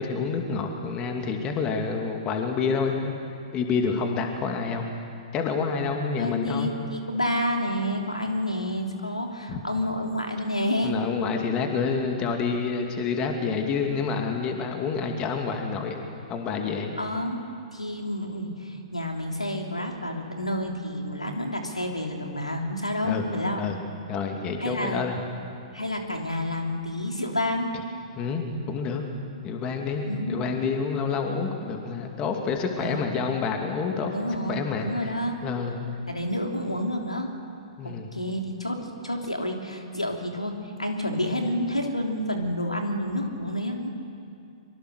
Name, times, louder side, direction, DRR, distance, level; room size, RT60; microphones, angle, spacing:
voice 1, 0.0-3.1 3.5-4.8 5.3-6.7 9.5-9.6 10.8-16.9 23.0-23.2 23.6-23.8 24.1-25.2 28.2-29.0 29.4-34.1 34.5-34.9 35.4-35.7 37.8-38.1, left 5 dB, 25° left, 3 dB, 2.5 m, -28 dB
voice 2, 6.2-10.9 17.0-17.4 17.7-23.6 24.6-25.1 25.7-27.7 30.0-30.5 32.8-33.1 34.1-35.4 36.1-37.3 37.8-43.9, left 1 dB, 85° left, 2 dB, 3.3 m, -29 dB
25.0 x 24.5 x 6.6 m, 2.4 s
figure-of-eight pair, 115°, 3 cm